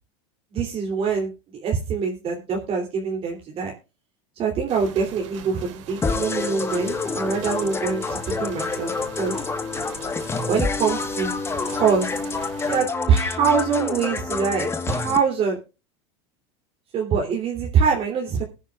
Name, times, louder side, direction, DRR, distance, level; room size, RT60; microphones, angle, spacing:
voice 1, 0.5-1.3 1.6-3.7 4.4-8.9 9.2-9.3 10.5-11.3 11.7-12.1 12.7-15.6 16.9-18.4, right 6 dB, 40° right, -1 dB, 3.1 m, -24 dB
sound 1, 4.7-12.8, right 8 dB, 80° right, 2.7 m, -42 dB
sound 2, 6.0-15.2, left 4 dB, 15° left, 1.4 m, -28 dB
21.0 x 10.0 x 2.4 m, 0.30 s
supercardioid pair, 130°, 16 cm